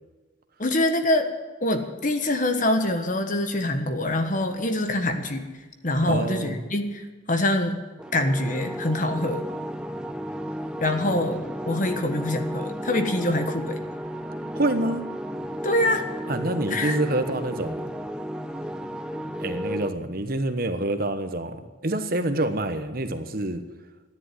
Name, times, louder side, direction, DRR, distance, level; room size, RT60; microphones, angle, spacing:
voice 1, 0.6-1.3 1.6-5.5 5.8-7.8 8.1-9.5 10.8-13.8 15.6-16.1 16.7-17.0, left 1 dB, 40° left, 7 dB, 1.3 m, -25 dB
voice 2, 6.0-6.6 14.5-15.1 16.3-17.9 19.4-23.6, right 1 dB, 50° right, 8 dB, 1.1 m, -27 dB
sound 1, 8.0-19.9, equal, 5° right, 0.6 m, -33 dB
13.0 x 10.5 x 9.6 m, 1.3 s
head